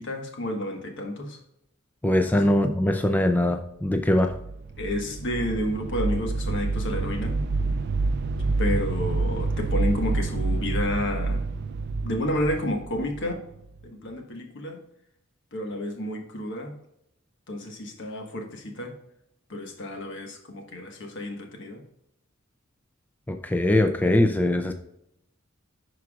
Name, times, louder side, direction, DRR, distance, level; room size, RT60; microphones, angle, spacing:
voice 1, 0.0-1.4 2.3-2.4 4.8-7.4 8.6-11.4 12.0-13.4 13.8-14.8 15.5-16.7 17.5-18.9 19.5-21.8, left 1 dB, 65° left, 3 dB, 1.4 m, -30 dB
voice 2, 2.0-4.3 23.3-24.7, left 1 dB, 10° left, 6 dB, 0.4 m, -22 dB
sound 1, 4.2-13.9, right 3 dB, 55° right, 0.4 m, -28 dB
11.0 x 4.6 x 2.4 m, 0.78 s
head